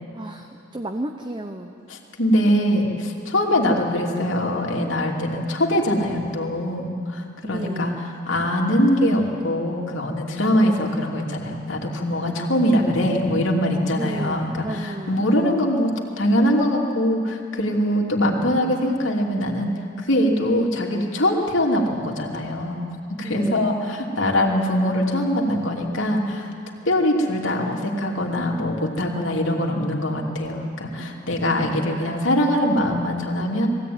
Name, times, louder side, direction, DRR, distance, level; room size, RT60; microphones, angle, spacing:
voice 1, 0.1-1.7 7.4-8.1 13.9-15.2 23.2-23.8 31.5-32.3, right 1 dB, 20° right, 5 dB, 0.8 m, -33 dB
voice 2, 1.9-7.9 8.3-15.9 16.2-19.7 20.0-22.9 23.2-26.5 26.8-33.7, equal, 70° left, 0 dB, 2.8 m, -22 dB
21.5 x 16.5 x 9.4 m, 2.5 s
head